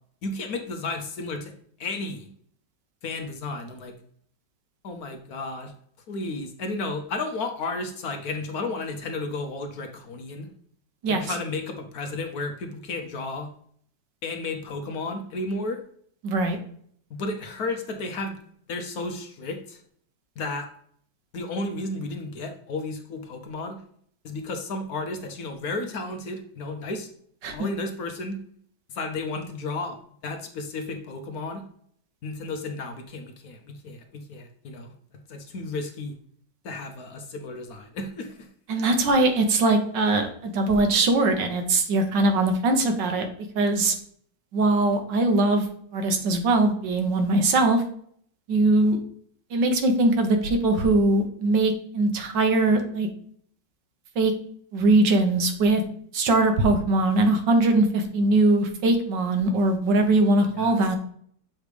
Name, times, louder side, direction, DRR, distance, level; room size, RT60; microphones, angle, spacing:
voice 1, 0.2-1.5 1.8-2.3 3.0-3.9 4.8-5.7 6.1-10.5 11.1-13.5 14.2-15.8 17.1-18.4 18.7-19.8 20.4-20.7 21.3-23.8 24.2-27.1 27.5-28.4 28.9-31.6 32.2-34.9 35.3-36.1 36.6-38.5 60.5-60.8, left 3 dB, 60° left, 5 dB, 1.2 m, -33 dB
voice 2, 16.2-16.6 27.4-27.6 38.7-43.3 43.5-43.9 44.5-45.7 45.9-47.8 48.5-49.0 49.5-53.1 54.1-54.3 54.7-55.8 56.1-61.0, right 2 dB, 75° right, 5 dB, 1.7 m, -21 dB
7.3 x 3.2 x 5.0 m, 0.62 s
omnidirectional pair, 1.9 m